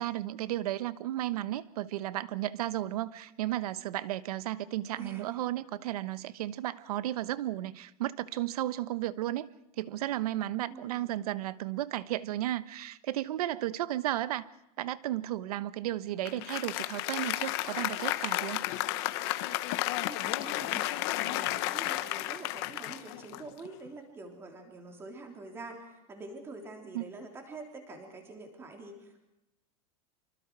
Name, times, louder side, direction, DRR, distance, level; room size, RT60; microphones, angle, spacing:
voice 1, 0.0-9.5 9.8-14.5 14.8-18.6 26.9-27.0, right 14 dB, 75° right, 15 dB, 1.1 m, -34 dB
voice 2, 4.9-5.4 10.7-11.3 20.0-29.2, right 3 dB, 10° right, 3 dB, 3.4 m, -46 dB
Applause, 16.2-23.9, left 16 dB, 45° left, 1.2 m, -32 dB
26.0 x 25.0 x 4.7 m, 0.89 s
supercardioid pair, 175°, 19 cm